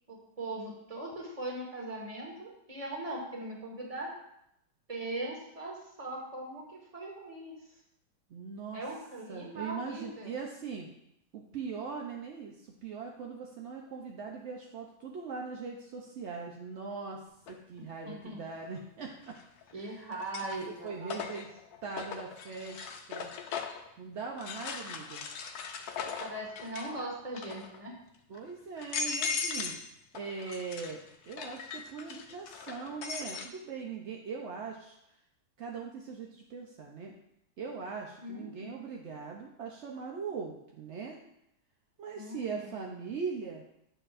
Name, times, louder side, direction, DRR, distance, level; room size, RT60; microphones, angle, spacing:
voice 1, 0.1-4.1 4.9-7.5 8.7-10.3 18.0-18.4 19.7-21.2 26.2-27.9 38.2-38.7 42.1-42.6, right 2 dB, 20° right, -1 dB, 1.4 m, -40 dB
voice 2, 8.3-8.8 9.3-10.9 11.3-17.2 17.5-19.4 19.8-20.0 20.4-20.5 20.8-21.5 21.8-23.3 24.0-25.3 28.3-35.0 35.6-37.1 37.6-41.2 42.0-43.6, right 5 dB, 65° right, 0 dB, 0.7 m, -40 dB
sound 1, 17.5-17.6 19.3-19.7 20.1-23.9 24.4-27.0 27.3-27.8 28.3-28.4 28.8-29.9 30.1-33.5, left 5 dB, 65° left, 1.1 m, -39 dB
8.9 x 6.7 x 2.5 m, 0.78 s
omnidirectional pair, 2.0 m